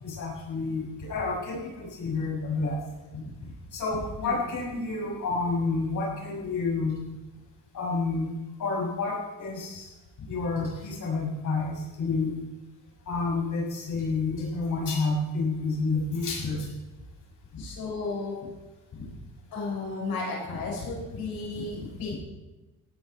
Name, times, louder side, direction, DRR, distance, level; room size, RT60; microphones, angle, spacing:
voice 1, 0.0-2.8 3.1-7.1 7.7-8.3 8.6-9.9 10.3-12.4 13.1-16.7 17.5-17.6 19.0-19.1 20.5-20.6 21.5-21.6 22.1-22.2, left 3 dB, 60° left, -2 dB, 7.1 m, -30 dB
voice 2, 17.6-18.4 19.5-22.2, left 3 dB, 85° left, -3 dB, 6.9 m, -34 dB
18.0 x 15.0 x 4.7 m, 1.1 s
cardioid pair, 160°, 35 cm